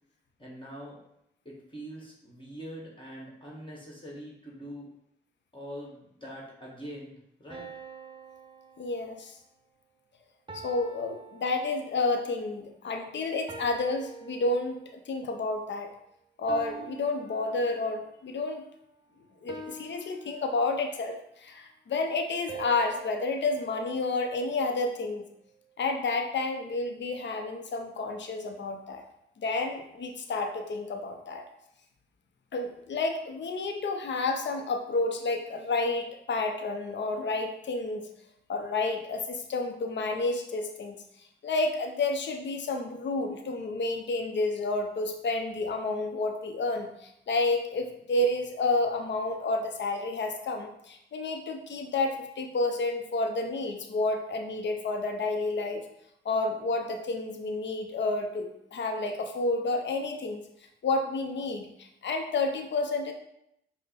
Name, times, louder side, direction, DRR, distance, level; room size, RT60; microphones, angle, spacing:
voice 1, 0.4-1.0 1.4-4.9 5.5-7.7, equal, 25° left, -4 dB, 1.6 m, -43 dB
sound 1, 7.5-9.4 10.5-12.1 13.5-15.1 16.5-18.2 19.5-21.1 22.5-24.8, right 4 dB, 25° right, 0.9 m, -46 dB
voice 2, 8.8-9.3 10.5-15.9 16.4-18.6 19.4-25.3 25.8-29.0 29.4-31.4 32.5-38.1 38.5-41.0 41.4-55.8 56.2-60.4 60.8-63.1, left 3 dB, 60° left, 5 dB, 0.7 m, -30 dB
5.2 x 2.2 x 4.1 m, 0.77 s
supercardioid pair, 40°, 21 cm